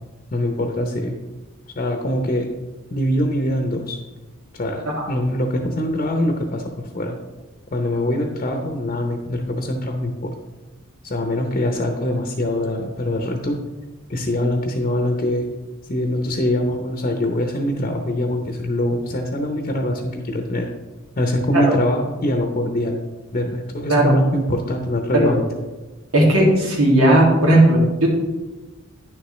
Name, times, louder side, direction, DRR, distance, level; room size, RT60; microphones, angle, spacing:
voice 1, 0.3-1.1 1.7-2.5 2.9-4.0 4.6-7.2 7.7-10.3 11.0-13.6 14.1-15.5 15.9-20.7 21.2-23.0 23.3-25.4, left 1 dB, 35° left, 4 dB, 0.7 m, -23 dB
voice 2, 26.1-28.1, right 1 dB, 90° right, -3 dB, 2.3 m, -15 dB
9.9 x 6.8 x 3.2 m, 1.1 s
head